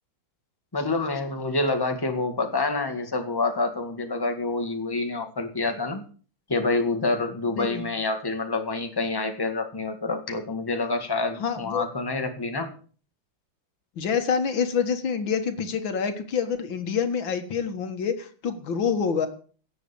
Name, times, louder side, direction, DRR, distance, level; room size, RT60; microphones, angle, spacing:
voice 1, 0.7-6.0 6.5-12.7, left 3 dB, 10° left, 5 dB, 1.7 m, -27 dB
voice 2, 11.4-11.8 14.0-19.3, left 6 dB, 90° left, 8 dB, 2.4 m, -27 dB
17.0 x 7.0 x 7.0 m, 0.41 s
omnidirectional pair, 2.0 m